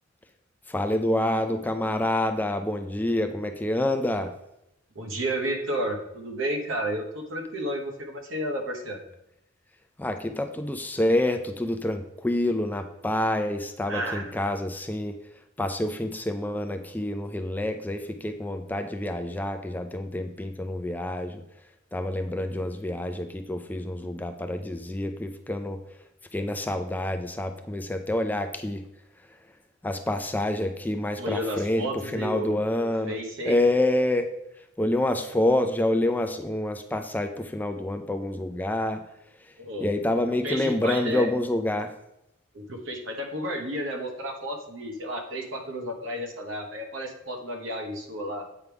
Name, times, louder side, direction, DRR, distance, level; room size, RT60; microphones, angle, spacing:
voice 1, 0.7-4.3 10.0-15.1 15.6-21.4 21.9-25.8 26.3-28.8 29.8-33.2 33.5-34.3 34.8-39.0 39.8-41.9, left 1 dB, 10° left, 6 dB, 0.4 m, -27 dB
voice 2, 4.9-9.0 13.9-14.4 31.2-32.6 33.1-33.6 39.6-39.9 40.4-41.3 42.5-48.4, equal, 75° right, 3 dB, 1.2 m, -32 dB
8.2 x 4.7 x 3.4 m, 0.84 s
head